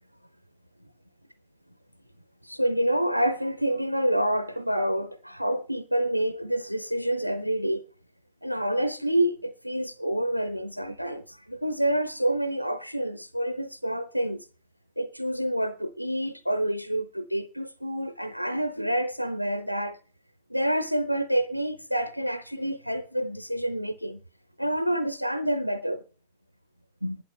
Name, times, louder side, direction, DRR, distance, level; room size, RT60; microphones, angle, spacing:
voice 1, 2.4-7.9 8.4-14.4 15.0-20.0 20.5-24.2 24.6-26.0 27.0-27.2, right 1 dB, 90° right, 0.6 m, -28 dB
24.5 x 11.0 x 3.2 m
figure-of-eight pair, 90°, 0 cm